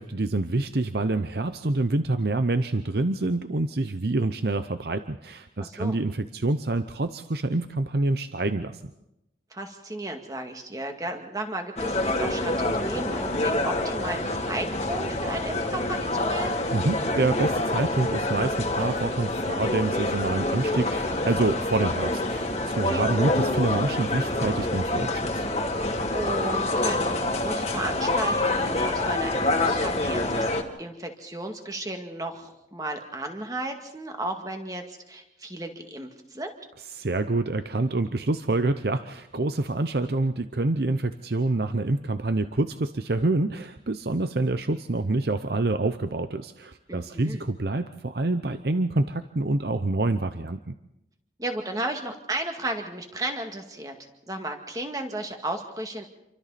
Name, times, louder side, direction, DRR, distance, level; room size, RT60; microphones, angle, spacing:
voice 1, 0.0-8.8 16.7-25.5 36.9-50.7, right 2 dB, 65° right, 10 dB, 0.8 m, -27 dB
voice 2, 5.6-6.0 9.5-16.6 22.8-23.1 26.1-36.5 46.9-47.5 51.4-53.9 54.3-56.0, right 1 dB, 20° right, 4 dB, 2.2 m, -34 dB
sound 1, 11.8-30.6, left 2 dB, 35° left, 2.2 m, -27 dB
28.0 x 24.0 x 4.2 m, 0.88 s
head